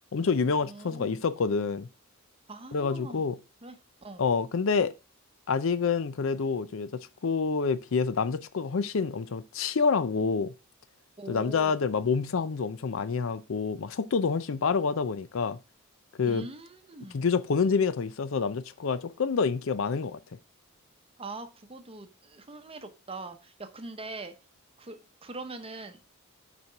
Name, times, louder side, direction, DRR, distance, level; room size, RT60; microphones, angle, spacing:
voice 1, 0.1-1.9 2.7-3.4 4.2-4.9 5.5-6.9 7.2-10.5 11.3-15.6 16.2-16.5 17.1-20.2, left 5 dB, 65° left, 0.5 m, -27 dB
voice 2, 0.6-1.2 2.5-3.3 3.6-4.2 11.2-11.9 16.2-17.3 21.2-24.3 24.8-26.0, right 2 dB, 25° right, 0.8 m, -42 dB
6.7 x 4.4 x 4.6 m
head